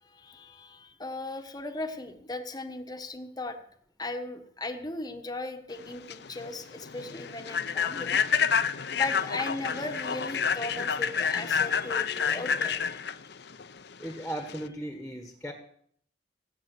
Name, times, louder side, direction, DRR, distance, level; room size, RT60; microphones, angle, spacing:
voice 1, 0.0-3.6 4.0-8.2 8.9-13.0, left 2 dB, 20° left, 6 dB, 1.2 m, -37 dB
Human voice / Train, 5.8-14.7, left 6 dB, 65° left, 0.7 m, -29 dB
voice 2, 14.0-15.5, right 1 dB, 5° left, 5 dB, 1.5 m, -37 dB
18.5 x 8.6 x 8.1 m, 0.64 s
head